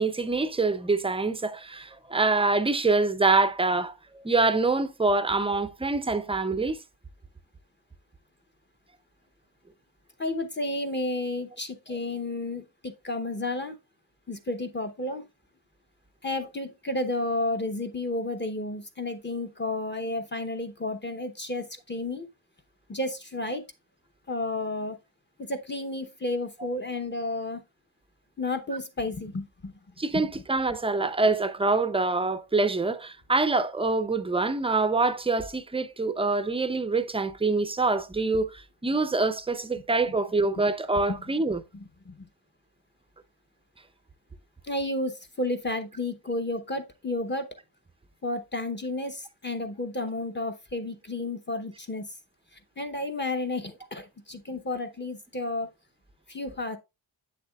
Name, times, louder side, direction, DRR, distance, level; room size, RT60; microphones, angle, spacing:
voice 1, 0.0-6.8 30.0-41.6, right 3 dB, 15° right, 0.4 m, -25 dB
voice 2, 10.2-13.8 14.3-15.3 16.2-22.3 22.9-23.6 24.3-25.0 25.4-27.6 28.4-29.7 30.1-30.3 41.1-41.2 41.7-42.3 44.7-47.5 48.2-52.1 52.8-55.7 56.3-56.8, left 2 dB, 25° left, 0.8 m, -32 dB
8.0 x 6.7 x 2.3 m
wide cardioid pair, 130°, 47 cm